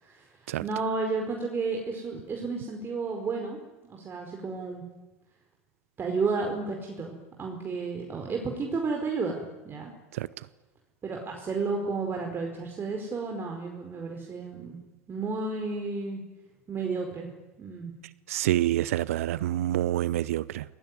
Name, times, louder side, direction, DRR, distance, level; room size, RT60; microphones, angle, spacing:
voice 1, 0.0-4.8 6.0-9.9 11.0-14.8 15.1-16.2 16.7-17.3 17.6-17.9, right 4 dB, 30° right, 2 dB, 4.8 m, -32 dB
voice 2, 18.3-20.6, right 14 dB, 70° right, 18 dB, 0.8 m, -27 dB
27.5 x 20.0 x 9.8 m, 1.2 s
hypercardioid pair, 85°, 8 cm